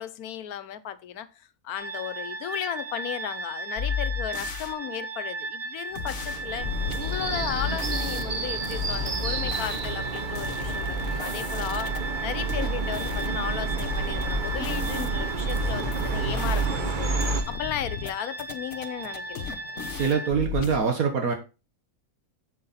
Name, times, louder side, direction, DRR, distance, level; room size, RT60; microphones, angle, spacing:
voice 1, 0.0-6.7 7.0-11.9 12.2-17.1 17.5-19.6, left 10 dB, 85° left, 1.3 m, -35 dB
sound 1, 1.7-20.3, right 3 dB, 15° right, 0.5 m, -36 dB
sound 2, 3.8-4.7 6.0-8.2 8.6-12.0 12.5-13.3 13.8-16.9 17.2-18.1 18.4-20.8, left 7 dB, 60° left, 1.3 m, -34 dB
sound 3, 6.0-17.4, right 3 dB, 35° right, 1.1 m, -30 dB
voice 2, 19.9-21.3, right 6 dB, 75° right, 1.7 m, -24 dB
7.8 x 7.3 x 4.1 m
omnidirectional pair, 1.5 m